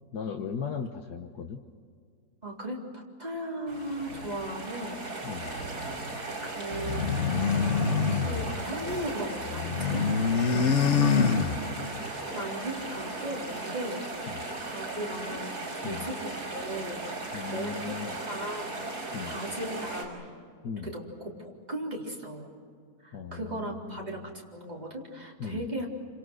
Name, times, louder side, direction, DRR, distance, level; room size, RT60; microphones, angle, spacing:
voice 1, 0.1-1.6 5.2-5.5 10.6-11.0 14.3-14.4 15.8-16.1 17.3-18.2 19.1-19.3 20.6-20.9 23.1-24.3 25.4-25.7, left 6 dB, 85° left, 4 dB, 1.7 m, -37 dB
voice 2, 2.4-5.1 6.4-7.2 8.1-10.1 12.3-14.0 14.6-17.0 17.5-20.3 20.8-22.5 23.0-25.9, right 1 dB, 25° right, -2 dB, 4.2 m, -37 dB
sound 1, 3.7-20.1, right 2 dB, 75° right, 5.9 m, -37 dB
sound 2, 6.7-9.1 9.4-12.0, left 5 dB, 50° left, 1.3 m, -26 dB
28.0 x 26.5 x 6.3 m, 2.1 s
omnidirectional pair, 1.7 m